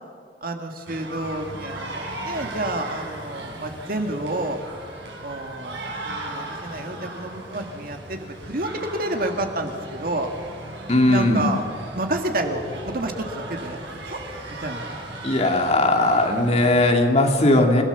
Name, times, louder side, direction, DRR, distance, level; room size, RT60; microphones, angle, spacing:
voice 1, 0.4-4.6 5.2-10.3 11.1-11.6 11.9-13.8 14.0-14.2 14.6-14.8, right 1 dB, 55° right, 4 dB, 2.3 m, -29 dB
sound 1, 0.9-16.9, right 1 dB, 85° right, 6.6 m, -37 dB
voice 2, 10.9-11.5 15.2-17.8, left 1 dB, 40° left, 2 dB, 2.6 m, -18 dB
29.5 x 18.0 x 7.0 m, 2.1 s
head